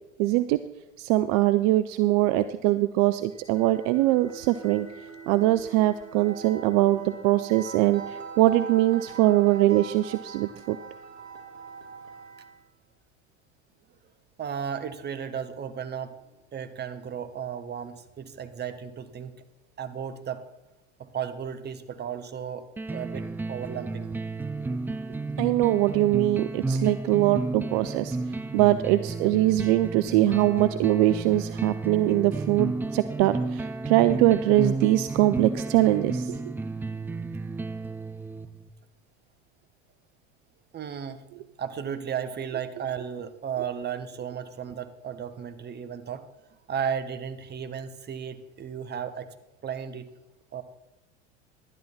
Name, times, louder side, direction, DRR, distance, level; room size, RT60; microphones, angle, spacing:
voice 1, 0.2-0.6 1.0-4.9 5.3-10.8 25.4-28.2 28.5-36.5, right 15 dB, 55° right, 12 dB, 0.6 m, -22 dB
sound 1, 3.2-12.7, right 5 dB, 85° right, 1.5 m, -42 dB
voice 2, 14.4-16.2 16.5-19.4 19.8-20.4 21.0-24.1 40.7-41.2 41.6-46.3 46.7-49.3 49.6-50.1 50.5-50.6, right 8 dB, 30° right, 10 dB, 1.1 m, -34 dB
sound 2, 22.8-38.7, right 3 dB, 5° right, 0.3 m, -32 dB
12.0 x 11.0 x 4.2 m, 0.98 s
hypercardioid pair, 80°, 37 cm